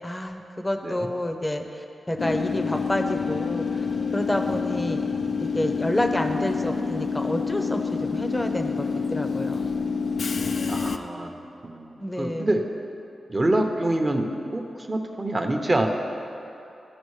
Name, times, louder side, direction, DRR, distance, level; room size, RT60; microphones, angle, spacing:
voice 1, 0.0-3.9 4.1-5.0 5.4-9.6 12.0-12.5, left 1 dB, 20° left, 5 dB, 0.7 m, -29 dB
Train / Subway metro underground, 2.2-11.0, left 5 dB, 65° left, 0.4 m, -27 dB
voice 2, 10.7-11.3 11.6-12.6 13.3-15.9, right 1 dB, 30° right, 3 dB, 0.8 m, -26 dB
14.0 x 5.0 x 3.2 m, 2.7 s
cardioid pair, 70°, 0 cm